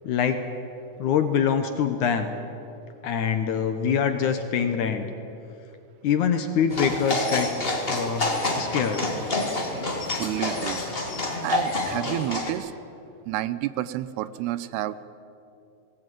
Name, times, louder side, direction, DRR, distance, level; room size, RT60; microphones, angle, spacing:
voice 1, 0.0-0.4 1.0-2.3 3.0-5.1 6.0-7.5 7.9-8.3 8.6-9.0, left 7 dB, 70° left, 7 dB, 2.0 m, -24 dB
sound 1, 6.7-12.5, left 2 dB, 25° left, 1.2 m, -28 dB
voice 2, 10.2-10.8 11.4-12.7 13.3-15.0, right 14 dB, 85° right, 15 dB, 2.7 m, -30 dB
19.5 x 18.5 x 9.2 m, 2.7 s
omnidirectional pair, 4.6 m